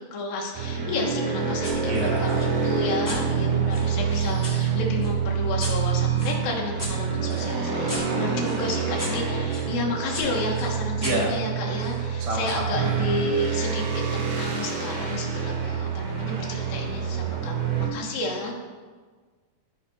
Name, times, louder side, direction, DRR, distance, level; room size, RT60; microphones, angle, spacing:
voice 1, 0.1-13.8 14.1-18.6, left 2 dB, 75° left, -1 dB, 3.1 m, -31 dB
sound 1, 0.5-17.9, right 6 dB, 60° right, 2.8 m, -27 dB
sound 2, 1.6-1.8 2.2-4.6 5.0-9.7 10.1-12.0, left 1 dB, 5° left, 2.1 m, -39 dB
voice 2, 1.8-2.4 11.0-11.3 12.3-13.2, right 1 dB, 20° right, -4 dB, 0.9 m, -28 dB
14.5 x 5.7 x 4.2 m, 1.4 s
omnidirectional pair, 4.3 m